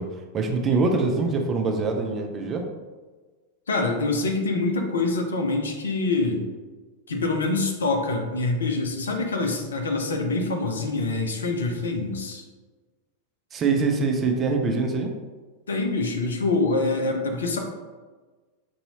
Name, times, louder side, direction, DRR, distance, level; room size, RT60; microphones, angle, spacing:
voice 1, 0.0-2.7 13.5-15.1, right 4 dB, 25° right, 3 dB, 0.5 m, -24 dB
voice 2, 3.7-6.4 7.1-12.4 15.7-17.6, left 3 dB, 70° left, 3 dB, 0.6 m, -25 dB
5.5 x 2.7 x 2.8 m, 1.3 s
figure-of-eight pair, 90°, 0 cm